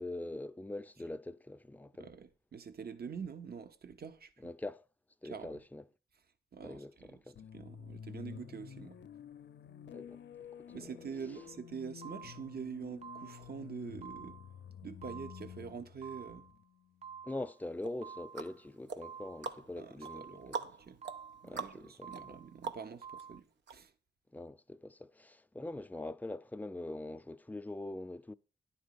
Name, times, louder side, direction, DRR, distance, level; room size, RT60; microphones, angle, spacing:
voice 1, 0.0-2.1 4.4-4.8 5.2-5.8 6.6-7.4 9.9-10.9 17.2-20.4 21.4-22.4 24.3-28.3, left 2 dB, 10° left, 0.5 m, -43 dB
voice 2, 2.0-4.5 5.2-5.6 6.5-7.2 7.5-9.0 10.7-14.4 14.8-16.5 19.8-21.0 21.4-23.9, right 6 dB, 60° right, 0.9 m, -45 dB
sound 1, 7.4-17.2, left 8 dB, 80° left, 0.5 m, -50 dB
sound 2, 11.3-11.6 12.0-12.6 13.0-13.6 14.0-14.6 15.0-15.6 16.0-16.6 17.0-17.6 18.0-18.6 19.0-19.6 20.0-20.6 21.0-21.6 22.0-22.6 23.0-23.4, right 7 dB, 35° right, 0.6 m, -50 dB
sound 3, 17.8-23.2 23.7-23.8, right 5 dB, 85° right, 0.8 m, -44 dB
10.5 x 4.3 x 6.8 m
cardioid pair, 70°, 18 cm